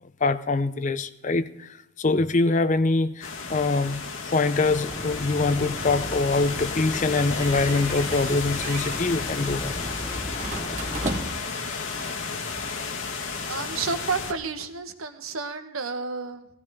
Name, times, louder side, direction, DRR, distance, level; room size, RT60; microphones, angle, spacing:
voice 1, 0.2-9.8, left 3 dB, 35° left, 13 dB, 0.5 m, -24 dB
sound 1, 3.2-14.3, left 4 dB, 70° left, 1.5 m, -32 dB
sound 2, 4.6-11.2, equal, 10° left, 1.0 m, -36 dB
sound 3, 7.2-8.3 8.6-9.0 10.4-11.6, right 2 dB, 35° right, 1.2 m, -35 dB
voice 2, 13.5-16.5, right 4 dB, 80° right, 8 dB, 1.2 m, -31 dB
17.0 x 15.0 x 3.5 m, 0.82 s
head